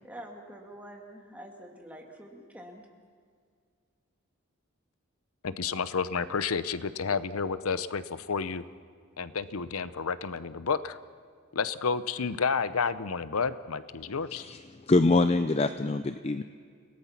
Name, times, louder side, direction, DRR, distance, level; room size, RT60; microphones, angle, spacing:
voice 1, 0.0-2.9, right 1 dB, 5° right, 1 dB, 2.3 m, -46 dB
voice 2, 5.4-8.6 9.2-11.0 11.5-14.4, left 5 dB, 85° left, 14 dB, 0.8 m, -30 dB
voice 3, 14.9-16.4, left 3 dB, 30° left, 10 dB, 0.5 m, -24 dB
29.5 x 18.0 x 5.8 m, 2.1 s
head